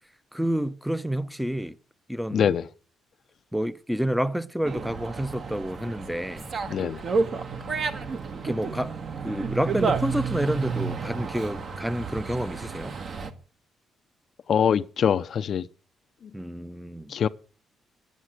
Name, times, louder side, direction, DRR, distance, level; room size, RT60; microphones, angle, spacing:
voice 1, 0.3-1.8 2.1-2.5 3.5-6.5 8.4-9.0 9.2-12.9 16.3-17.1, equal, ahead, 0.7 m, -29 dB
voice 2, 2.3-2.6 6.7-7.0 14.5-15.7 17.1-17.3, left 8 dB, 60° left, 0.5 m, -23 dB
Dog, 4.6-13.3, right 5 dB, 50° right, 1.5 m, -31 dB
10.0 x 8.2 x 7.6 m
cardioid pair, 90°, 0 cm